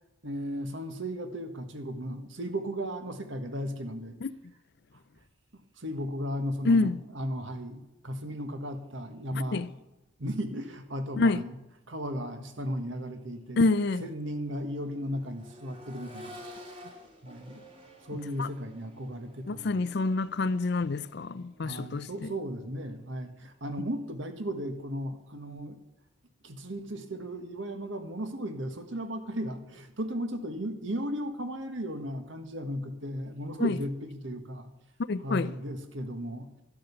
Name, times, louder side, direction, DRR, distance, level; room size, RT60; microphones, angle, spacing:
voice 1, 0.2-4.2 5.8-9.7 10.2-11.5 11.9-13.7 14.0-16.4 17.2-17.6 18.0-19.9 21.6-25.8 26.4-34.7 35.2-36.5, equal, 65° right, 1.5 m, -35 dB
voice 2, 6.6-7.0 9.5-9.7 11.2-11.4 13.6-14.0 18.4-18.5 19.5-22.3 33.6-33.8 35.1-35.5, left 3 dB, 55° left, 0.5 m, -27 dB
Accelerating revving vroom, 13.2-23.0 24.7-24.8, equal, 25° right, 2.4 m, -51 dB
12.0 x 11.5 x 6.9 m
head